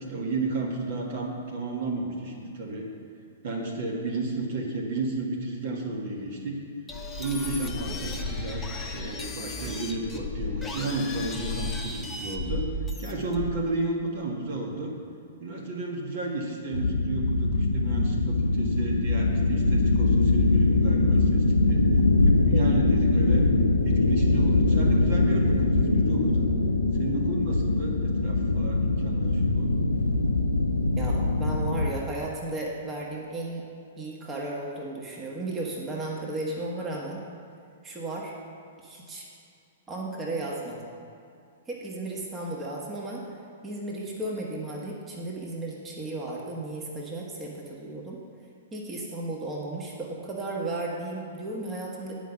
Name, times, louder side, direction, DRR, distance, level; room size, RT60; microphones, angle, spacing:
voice 1, 0.1-2.9 3.4-6.6 7.1-12.7 13.0-14.9 15.4-21.8 22.2-23.5 23.8-26.5 26.9-29.8, right 2 dB, 50° right, 0 dB, 1.7 m, -32 dB
sound 1, 6.9-13.7, left 2 dB, 10° left, 1.0 m, -34 dB
sound 2, 16.7-31.9, left 2 dB, 85° left, 0.6 m, -23 dB
voice 2, 31.0-33.7 34.0-37.2 37.8-38.3 38.8-39.2 39.9-40.8 41.7-43.2 43.6-48.2 48.7-52.2, right 2 dB, 20° right, -2 dB, 1.4 m, -34 dB
10.0 x 5.2 x 7.2 m, 2.5 s
figure-of-eight pair, 110°, 0 cm